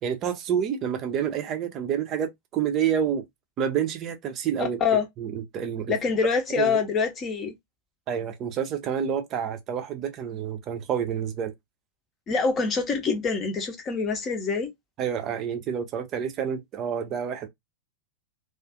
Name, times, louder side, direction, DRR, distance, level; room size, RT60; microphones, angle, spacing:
voice 1, 0.0-3.2 3.6-4.8 5.2-5.9 6.6-6.8 8.1-11.5 15.0-17.5, right 8 dB, 35° right, 0.5 m, -28 dB
voice 2, 4.6-5.0 5.9-7.5 12.3-14.7, left 5 dB, 25° left, 0.7 m, -25 dB
2.4 x 2.4 x 2.4 m
figure-of-eight pair, 90°, 0 cm